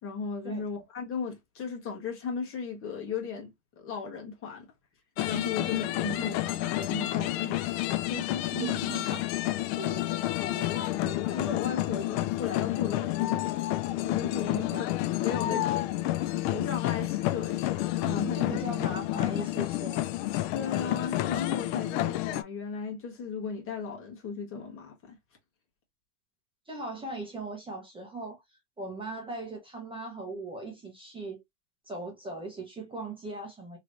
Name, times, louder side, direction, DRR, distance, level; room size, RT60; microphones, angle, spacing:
voice 1, 0.0-3.5 3.8-4.7 5.2-7.6 8.1-8.6 9.3-9.4 9.8-13.5 14.0-14.9 15.2-15.8 16.5-18.6 20.5-25.2, left 6 dB, 30° left, 1.3 m, -36 dB
sound 1, 5.2-22.4, left 16 dB, 50° left, 0.5 m, -30 dB
voice 2, 8.4-9.2 14.4-14.8 15.5-15.7 18.3-20.0 26.7-28.4 28.8-31.4 31.9-33.8, right 3 dB, 10° right, 1.1 m, -39 dB
3.1 x 3.0 x 2.5 m
supercardioid pair, 125°, 42 cm